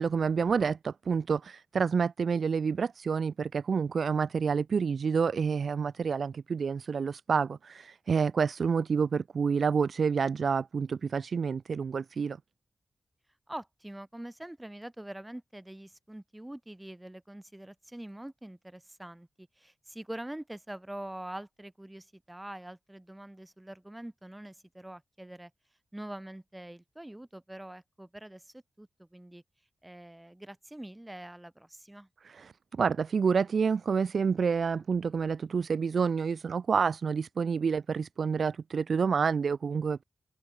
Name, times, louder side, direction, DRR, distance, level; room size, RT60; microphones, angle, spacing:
voice 1, 0.0-12.4 32.2-40.0, right 6 dB, 70° right, 0.3 m, -28 dB
voice 2, 13.5-25.5 25.9-29.4 29.8-32.1, right 1 dB, 10° right, 5.7 m, -44 dB
open air
wide cardioid pair, 100°, 0 cm